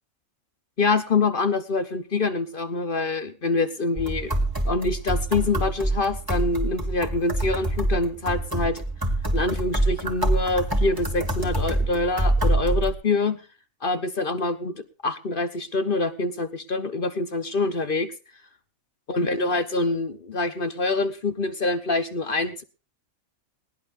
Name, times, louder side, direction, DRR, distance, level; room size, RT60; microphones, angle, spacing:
voice 1, 0.8-4.3 4.6-8.8 9.3-13.4 13.8-18.1 19.1-22.6, left 3 dB, 45° left, 10 dB, 1.1 m, -25 dB
sound 1, 4.0-12.9, right 1 dB, 15° right, 2.0 m, -25 dB
20.0 x 18.0 x 2.6 m, 0.33 s
omnidirectional pair, 1.4 m